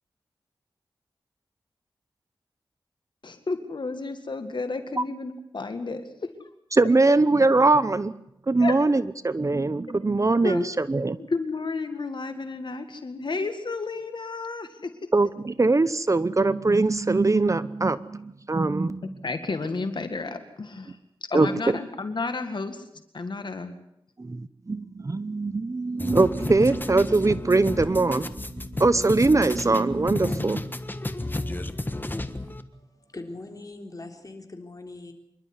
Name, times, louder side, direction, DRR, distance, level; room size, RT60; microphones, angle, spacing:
voice 1, 3.2-6.5 8.6-8.8 9.9-10.7 11.3-14.9 19.2-21.0 21.3-22.9 23.1-23.7, left 3 dB, 60° left, 8 dB, 2.0 m, -32 dB
voice 2, 6.7-8.1 8.5-11.2 15.1-19.1 21.3-21.5 24.2-30.7, right 3 dB, 35° right, 15 dB, 0.8 m, -22 dB
sound 1, 26.0-32.6, left 2 dB, 20° left, 1.4 m, -32 dB
voice 3, 32.7-35.1, left 2 dB, 40° left, 4 dB, 3.8 m, -41 dB
26.0 x 12.0 x 9.6 m, 0.79 s
wide cardioid pair, 65°, 9 cm